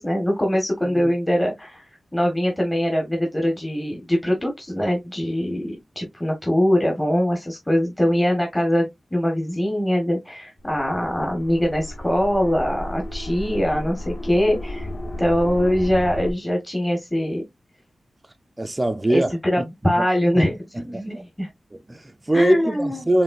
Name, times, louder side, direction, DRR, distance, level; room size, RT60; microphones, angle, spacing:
voice 1, 0.0-1.8 2.1-14.9 15.2-17.4 19.1-20.6 20.8-21.5 22.3-23.1, equal, 15° left, 1.2 m, -22 dB
sound 1, 10.6-16.3, left 1 dB, 45° left, 1.3 m, -33 dB
voice 2, 18.6-19.3 20.0-20.1 20.3-20.4 20.7-21.2 21.7-23.2, right 1 dB, 20° right, 0.5 m, -23 dB
5.2 x 3.2 x 2.4 m
wide cardioid pair, 90°, 0 cm